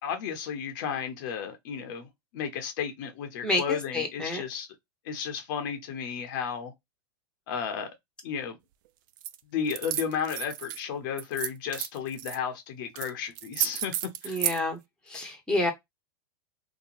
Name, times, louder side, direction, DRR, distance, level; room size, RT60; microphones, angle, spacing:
voice 1, 0.0-4.7 5.0-6.7 7.5-7.9 8.2-8.6 9.5-14.4, left 7 dB, 55° left, 0.8 m, -33 dB
voice 2, 3.4-4.4 14.2-14.8 15.1-15.7, left 2 dB, 5° left, 1.0 m, -29 dB
sound 1, 9.2-9.4 9.7-10.8 11.2-12.4 12.9-13.1 13.3-14.6, right 12 dB, 55° right, 0.4 m, -32 dB
2.9 x 2.2 x 2.5 m
hypercardioid pair, 115°, 13 cm